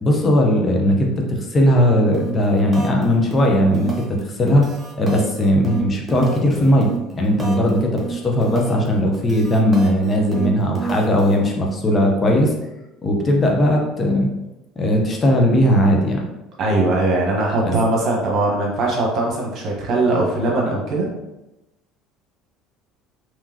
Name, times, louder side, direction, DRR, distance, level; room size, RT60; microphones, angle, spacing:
voice 1, 0.0-4.7 5.0-12.5 13.0-14.3 14.8-16.2 17.6-17.7, equal, 30° left, 0 dB, 0.8 m, -18 dB
sound 1, 2.1-2.4 2.7-3.0 3.3-4.2 4.5-7.7 8.0-8.9 9.1-11.3, right 4 dB, 20° right, 1.0 m, -30 dB
voice 2, 16.6-21.1, right 2 dB, 50° right, -3 dB, 1.2 m, -20 dB
3.6 x 3.0 x 2.8 m, 0.95 s
hypercardioid pair, 65°, 0 cm